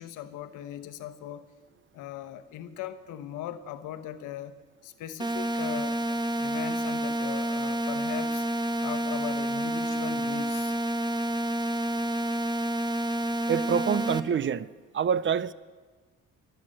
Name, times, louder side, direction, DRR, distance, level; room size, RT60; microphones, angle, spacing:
voice 1, 0.0-1.5 1.9-6.0 6.4-8.5 8.8-10.8, left 11 dB, 90° left, 1.0 m, -39 dB
sound 1, 5.2-14.2, right 1 dB, 15° right, 0.9 m, -29 dB
voice 2, 13.5-14.7 14.9-15.5, right 7 dB, 40° right, 0.5 m, -26 dB
22.0 x 7.9 x 7.7 m
cardioid pair, 90°, 30 cm